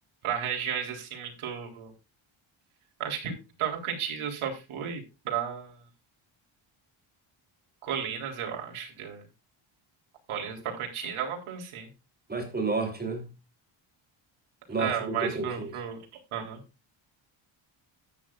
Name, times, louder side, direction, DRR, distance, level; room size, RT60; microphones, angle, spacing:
voice 1, 0.2-1.9 3.0-5.8 7.8-9.2 10.3-11.9 14.8-16.0 16.3-16.6, right 8 dB, 75° right, 3.9 m, -33 dB
voice 2, 12.3-13.3 14.7-15.7, right 3 dB, 20° right, 3.5 m, -30 dB
13.0 x 9.5 x 2.5 m
cardioid pair, 125°, 49 cm